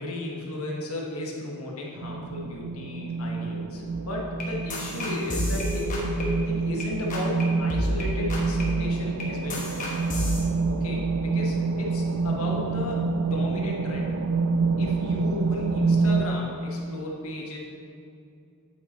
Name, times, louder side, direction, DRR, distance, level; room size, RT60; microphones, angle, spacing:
voice 1, 0.0-5.9 6.4-9.6 10.7-14.1 14.8-17.6, left 2 dB, 75° left, -2 dB, 1.3 m, -35 dB
sound 1, 2.0-16.3, right 4 dB, 75° right, 0.4 m, -27 dB
sound 2, 3.9-6.8 7.1-7.4 7.7-10.4, equal, 35° left, 1.1 m, -30 dB
8.4 x 4.4 x 4.2 m, 2.4 s
head